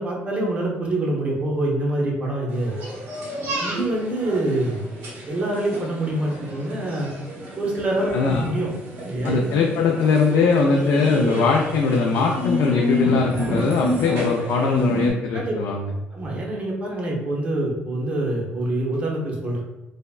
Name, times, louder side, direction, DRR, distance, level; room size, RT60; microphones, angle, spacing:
voice 1, 0.0-2.7 3.6-4.8 5.3-7.1 7.6-8.7 9.1-9.4 15.3-15.5 16.1-19.6, right 1 dB, 30° right, -2 dB, 0.7 m, -25 dB
sound 1, 2.5-15.1, equal, 75° right, 1.0 m, -30 dB
voice 2, 8.1-8.5 9.2-15.9, left 4 dB, 85° left, -1 dB, 0.3 m, -21 dB
3.4 x 2.1 x 2.3 m, 1.0 s
cardioid pair, 135°, 4 cm